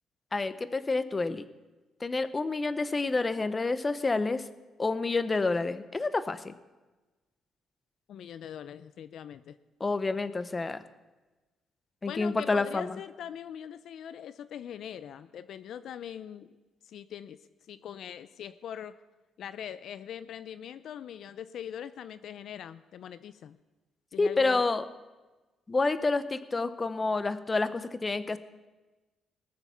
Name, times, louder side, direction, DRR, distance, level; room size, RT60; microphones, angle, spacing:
voice 1, 0.3-1.4 2.0-4.4 4.8-6.5 9.8-10.8 12.0-13.0 24.2-24.9 25.7-28.4, left 3 dB, 25° left, 13 dB, 0.7 m, -28 dB
voice 2, 8.1-9.6 12.1-16.6 16.8-17.4 17.7-19.0 19.4-23.6 24.1-24.7, left 9 dB, 70° left, 14 dB, 0.4 m, -42 dB
19.0 x 6.9 x 5.6 m, 1.2 s
cardioid pair, 90°, 0 cm